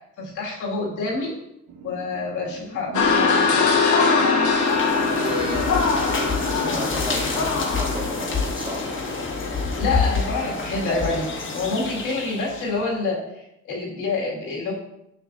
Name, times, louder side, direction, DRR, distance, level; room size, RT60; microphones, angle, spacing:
voice 1, 0.2-1.3 1.8-3.7 9.8-14.7, left 3 dB, 90° left, -3 dB, 2.0 m, -27 dB
sound 1, 1.7-7.2, right 2 dB, 80° right, 0.9 m, -42 dB
sound 2, 2.9-10.0, left 4 dB, 70° left, 1.1 m, -22 dB
sound 3, 4.4-12.8, left 4 dB, 40° left, 1.3 m, -28 dB
voice 2, 5.1-8.8, right 1 dB, 15° right, 2 dB, 1.0 m, -34 dB
6.9 x 5.9 x 2.5 m, 0.83 s
cardioid pair, 90°, 30 cm